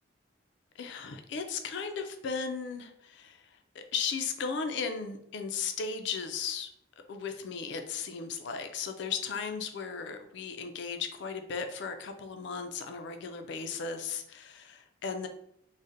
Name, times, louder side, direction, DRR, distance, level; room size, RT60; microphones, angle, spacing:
voice 1, 0.8-3.4 3.7-6.7 7.1-15.3, left 5 dB, 60° left, 7 dB, 0.4 m, -36 dB
3.9 x 2.1 x 2.5 m, 0.72 s
head